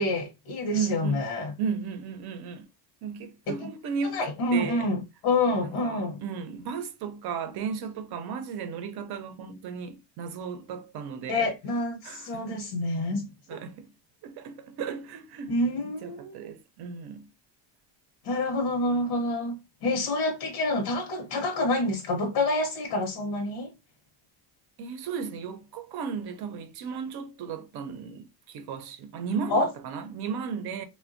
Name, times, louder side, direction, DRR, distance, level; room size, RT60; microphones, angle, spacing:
voice 1, 0.0-1.5 3.5-3.7 4.1-6.2 11.3-13.6 15.5-16.4 18.2-19.6 19.8-23.7 29.5-29.7, left 2 dB, 70° left, 0.9 m, -27 dB
voice 2, 0.7-1.3 1.6-2.7 3.0-4.2 4.5-4.9 5.6-11.5 12.0-12.7 13.5-13.9 14.2-15.6 16.0-17.3 24.8-30.8, right 6 dB, 50° right, 0.6 m, -35 dB
3.3 x 2.2 x 2.5 m
cardioid pair, 145°, 50 cm